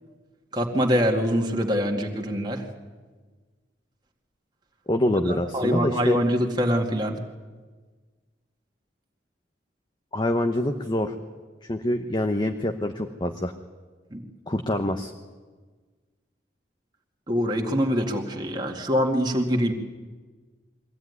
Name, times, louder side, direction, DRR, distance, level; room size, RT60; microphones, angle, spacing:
voice 1, 0.5-2.7 5.3-7.2 14.1-14.2 17.3-19.7, equal, 25° right, 1 dB, 2.2 m, -24 dB
voice 2, 4.9-6.2 10.1-11.1 11.6-13.5 14.5-15.1, left 1 dB, 25° left, 5 dB, 1.0 m, -25 dB
23.0 x 16.0 x 9.6 m, 1.4 s
head